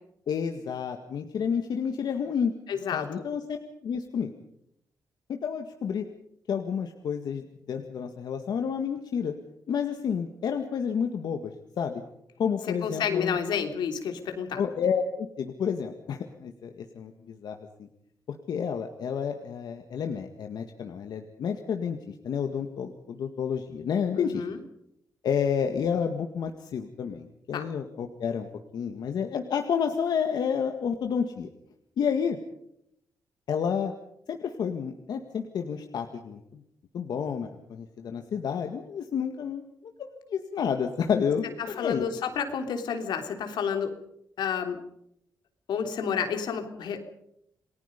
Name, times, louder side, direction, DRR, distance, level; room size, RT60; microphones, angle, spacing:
voice 1, 0.3-2.5 2.9-3.6 3.8-4.3 5.3-6.1 6.5-9.3 9.7-12.0 12.4-13.4 14.6-17.9 18.5-24.4 25.2-28.5 28.7-31.5 32.0-32.4 33.5-33.9 34.3-36.4 36.9-39.6 40.0-42.1, left 7 dB, 70° left, 5 dB, 1.9 m, -30 dB
voice 2, 2.7-3.2 12.8-14.6 24.2-24.6 27.5-27.6 41.6-43.9 44.4-44.8 45.7-47.0, left 7 dB, 90° left, 6 dB, 3.3 m, -30 dB
28.5 x 20.0 x 5.3 m, 0.75 s
cardioid pair, 120°, 7 cm